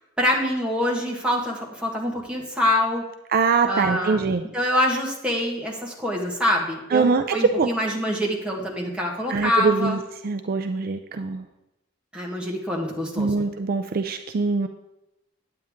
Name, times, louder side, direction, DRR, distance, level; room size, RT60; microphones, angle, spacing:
voice 1, 0.2-3.0 3.6-4.2 4.5-10.0 12.1-13.5, left 1 dB, 5° right, -2 dB, 1.4 m, -25 dB
voice 2, 3.3-4.4 6.9-7.7 9.3-10.0 10.2-11.5 13.2-14.7, right 4 dB, 45° right, 7 dB, 0.4 m, -23 dB
9.1 x 8.7 x 3.6 m, 0.93 s
head